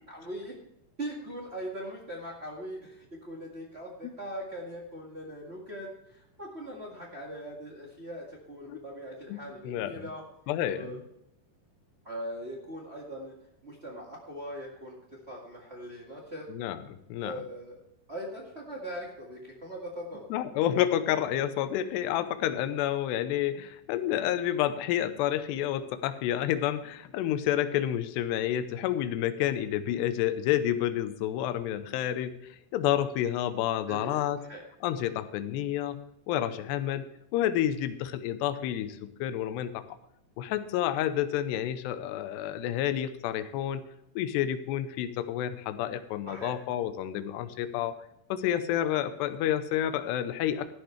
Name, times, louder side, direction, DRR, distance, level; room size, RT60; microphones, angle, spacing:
voice 1, 0.1-0.5 1.0-10.2 10.7-11.0 12.0-13.3 13.6-16.5 17.2-17.8 18.1-20.3 33.9-34.6 46.3-46.5, equal, 70° right, -3 dB, 0.6 m, -40 dB
voice 2, 9.3-10.1 10.5-11.0 16.5-16.8 17.1-17.4 20.3-34.4 34.8-36.0 36.3-37.1 37.3-40.0 40.4-43.8 44.2-48.0 48.3-50.7, left 11 dB, 85° left, 11 dB, 2.9 m, -29 dB
13.0 x 11.5 x 3.3 m, 0.81 s
omnidirectional pair, 4.8 m